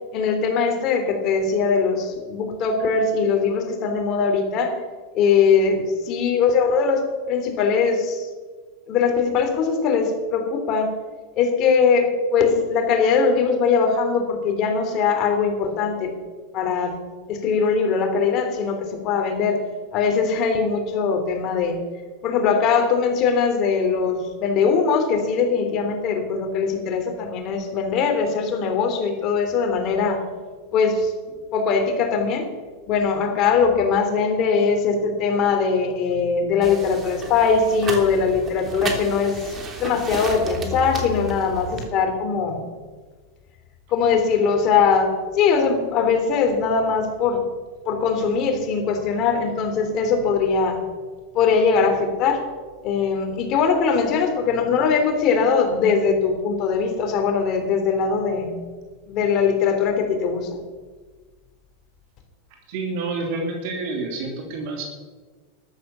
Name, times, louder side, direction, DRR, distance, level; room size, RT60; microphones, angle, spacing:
voice 1, 0.1-4.8 5.1-8.3 8.9-10.9 11.4-16.1 16.5-17.0 17.3-19.6 19.9-21.8 22.2-30.2 30.7-31.1 31.5-32.5 32.9-42.7 43.9-47.4 47.9-50.8 51.3-52.4 52.8-58.5 59.1-60.6, left 5 dB, 45° left, 4 dB, 3.4 m, -21 dB
sound 1, 36.6-41.8, right 3 dB, 30° right, 3.1 m, -33 dB
voice 2, 62.7-64.8, right 3 dB, 60° right, 1 dB, 3.1 m, -28 dB
13.5 x 11.5 x 7.0 m, 1.4 s
hypercardioid pair, 120°, 0 cm